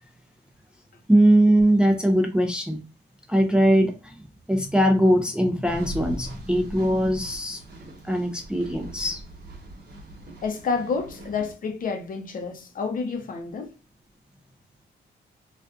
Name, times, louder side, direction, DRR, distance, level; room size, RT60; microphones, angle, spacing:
voice 1, 1.1-2.8 3.3-4.2 4.5-7.6 8.0-9.2, right 1 dB, 5° right, 0.4 m, -21 dB
sound 1, 5.6-11.5, right 1 dB, 55° right, 1.1 m, -41 dB
voice 2, 10.4-13.7, left 5 dB, 45° left, 0.6 m, -29 dB
2.4 x 2.4 x 2.3 m
cardioid pair, 90°, 20 cm